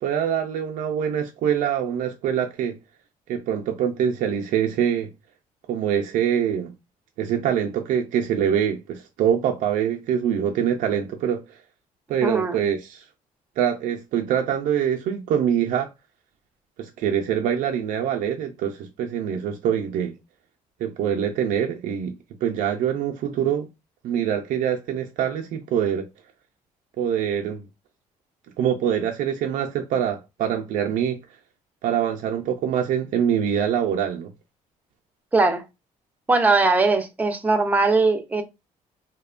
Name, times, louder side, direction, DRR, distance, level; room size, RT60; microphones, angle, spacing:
voice 1, 0.0-2.8 3.3-5.1 5.7-6.7 7.2-11.4 12.1-13.0 13.6-15.9 16.8-20.1 20.8-22.1 22.4-23.7 24.0-26.1 27.0-27.6 28.6-31.2 31.8-34.3, right 9 dB, 70° right, 0.4 m, -24 dB
voice 2, 12.2-12.6 35.3-35.6 36.3-38.4, right 3 dB, 10° right, 0.4 m, -20 dB
2.7 x 2.1 x 2.4 m
cardioid pair, 115°, 14 cm